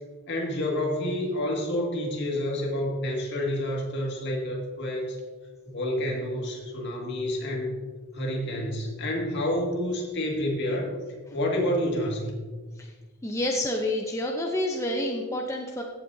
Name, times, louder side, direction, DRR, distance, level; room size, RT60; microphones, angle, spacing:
voice 1, 0.3-5.2 5.7-7.8 8.1-10.9 11.3-12.5, left 1 dB, 55° left, -1 dB, 2.0 m, -29 dB
voice 2, 13.2-15.8, left 1 dB, 15° left, 1 dB, 0.6 m, -28 dB
15.5 x 7.5 x 2.7 m, 1.4 s
head